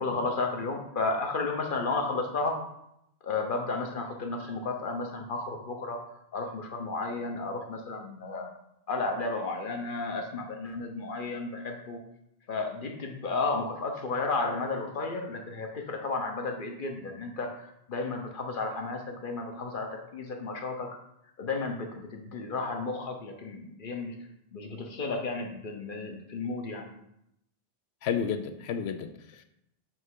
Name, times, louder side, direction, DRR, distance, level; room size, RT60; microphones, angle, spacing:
voice 1, 0.0-2.6 3.2-6.0 6.3-8.5 8.9-12.0 12.5-20.9 21.4-24.1 24.5-26.9, left 3 dB, 55° left, 2 dB, 1.0 m, -33 dB
voice 2, 28.0-29.5, left 7 dB, 75° left, 9 dB, 0.8 m, -32 dB
7.4 x 3.2 x 4.7 m, 0.79 s
omnidirectional pair, 1.1 m